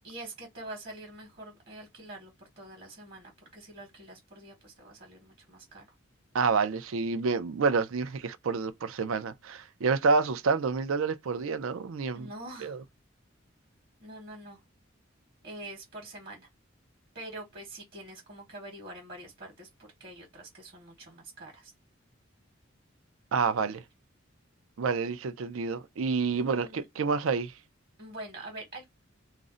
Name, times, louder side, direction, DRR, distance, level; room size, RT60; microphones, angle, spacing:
voice 1, 0.0-5.9 12.1-12.8 14.0-14.6 15.4-16.5 17.1-21.7 26.3-26.8 28.0-28.9, right 1 dB, 50° right, 1.0 m, -45 dB
voice 2, 6.3-12.3 12.6-12.8 23.3-23.8 24.8-27.5, right 4 dB, 90° right, 0.5 m, -28 dB
2.5 x 2.1 x 3.7 m
head